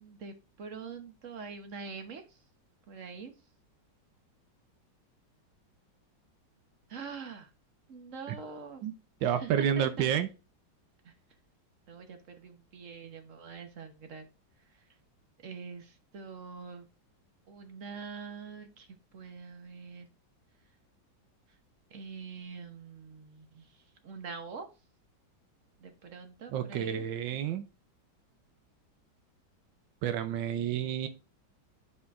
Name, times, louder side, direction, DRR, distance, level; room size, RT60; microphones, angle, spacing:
voice 1, 0.0-2.4 2.9-3.3 6.9-7.5 7.9-8.8 9.2-10.1 11.0-11.1 11.9-14.3 14.7-14.9 15.4-16.9 17.5-18.9 19.1-20.1 21.9-24.7 25.8-27.0, right 5 dB, 50° right, 6 dB, 1.2 m, -44 dB
voice 2, 9.2-10.3 26.5-27.7 30.0-31.1, right 9 dB, 90° right, 10 dB, 1.4 m, -29 dB
10.5 x 4.4 x 2.4 m, 0.30 s
omnidirectional pair, 2.0 m